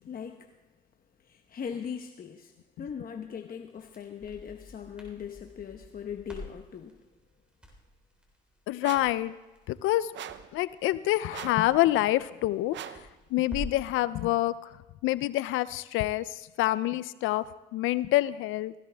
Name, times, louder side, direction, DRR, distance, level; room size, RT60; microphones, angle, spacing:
voice 1, 0.0-0.5 1.2-7.0, left 7 dB, 45° left, 5 dB, 1.0 m, -40 dB
Crackle, 3.7-13.9, left 1 dB, 5° right, 3.6 m, -47 dB
voice 2, 8.7-9.4 9.7-10.1 10.5-12.8 13.3-14.7 15.0-17.5 17.7-18.7, left 16 dB, 85° left, 17 dB, 0.5 m, -27 dB
sound 1, 8.8-9.2 10.1-10.5 11.3-11.7 12.7-13.1, right 10 dB, 65° right, 0.7 m, -41 dB
17.0 x 15.5 x 3.4 m, 1.1 s
cardioid pair, 75°, 20 cm